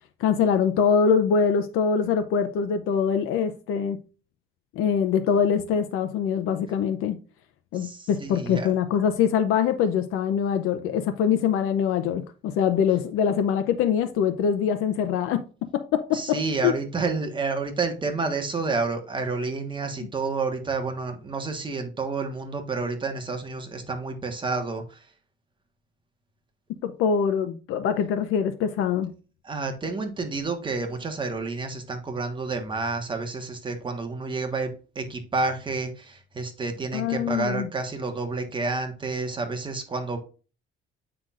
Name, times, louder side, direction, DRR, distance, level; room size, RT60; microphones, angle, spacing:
voice 1, 0.2-4.0 4.8-7.2 7.7-15.4 15.7-16.7 26.8-29.1 36.9-37.7, left 7 dB, 90° left, 0.7 m, -23 dB
voice 2, 7.7-8.7 16.1-25.0 29.4-40.2, right 3 dB, 25° right, 1.3 m, -29 dB
7.8 x 5.8 x 2.4 m
cardioid pair, 150°, 21 cm